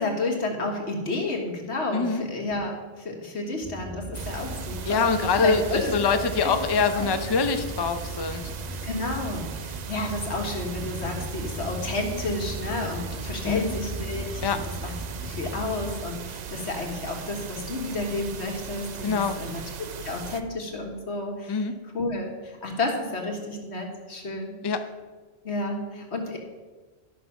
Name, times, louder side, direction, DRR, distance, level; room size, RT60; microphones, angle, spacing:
voice 1, 0.0-5.1 5.4-5.9 6.4-6.5 6.9-7.1 8.8-14.9 15.2-19.6 20.0-21.6 21.9-24.5 25.4-26.4, left 2 dB, 90° left, 1 dB, 2.0 m, -31 dB
voice 2, 1.9-2.2 4.9-8.5 13.4-13.7 14.4-14.6 19.0-19.4 21.5-21.7 24.6-24.8, left 5 dB, 30° left, 8 dB, 0.6 m, -24 dB
sound 1, 3.6-15.9, right 1 dB, 5° right, 1.0 m, -37 dB
sound 2, 4.1-20.4, right 7 dB, 50° right, 0.6 m, -38 dB
12.0 x 6.0 x 5.8 m, 1.3 s
omnidirectional pair, 1.1 m